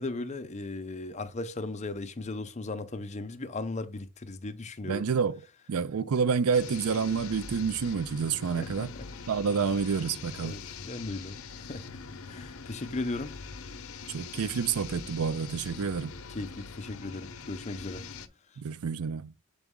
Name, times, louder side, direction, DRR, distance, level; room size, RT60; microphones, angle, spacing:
voice 1, 0.0-5.0 8.6-9.1 10.4-12.0 12.3-13.3 16.3-18.0, left 2 dB, 30° left, 0.6 m, -37 dB
voice 2, 4.8-5.4 5.7-8.9 9.3-10.6 14.1-16.1 18.6-19.3, right 6 dB, 80° right, 0.5 m, -28 dB
sound 1, 6.5-18.3, left 5 dB, 80° left, 0.7 m, -43 dB
7.0 x 4.1 x 3.6 m
head